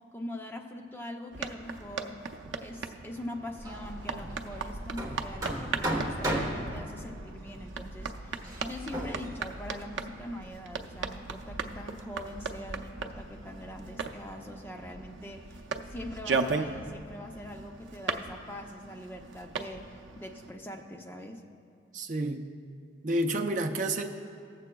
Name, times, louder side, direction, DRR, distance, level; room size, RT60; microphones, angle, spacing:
voice 1, 0.0-2.2 2.6-21.4, left 1 dB, 10° left, 3 dB, 0.5 m, -42 dB
sound 1, 1.3-20.5, right 4 dB, 85° right, 0.5 m, -38 dB
Hammer, 3.6-10.5, right 1 dB, 20° right, 1.2 m, -36 dB
voice 2, 21.9-22.4 23.0-24.0, right 1 dB, 45° right, 2 dB, 0.6 m, -29 dB
22.0 x 7.5 x 2.3 m, 2.3 s
head